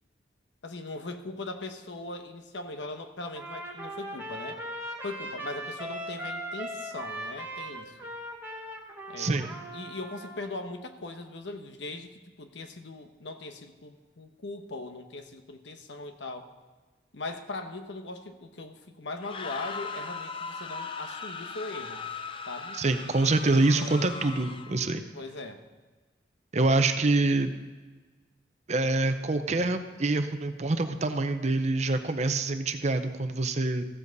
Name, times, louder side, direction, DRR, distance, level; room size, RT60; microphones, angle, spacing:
voice 1, 0.6-4.6 5.0-8.0 9.1-9.4 9.7-16.5 17.1-22.0 22.5-22.8 23.7-24.1 25.1-25.6, left 2 dB, 75° left, 7 dB, 1.0 m, -40 dB
Trumpet, 3.3-10.4, right 1 dB, 10° right, 1.2 m, -39 dB
voice 2, 9.2-9.5 22.8-25.0 26.5-27.5 28.7-33.9, right 2 dB, 40° right, 8 dB, 0.6 m, -26 dB
sound 1, 19.1-24.9, left 4 dB, 30° left, 0.5 m, -39 dB
15.0 x 7.6 x 4.0 m, 1.3 s
head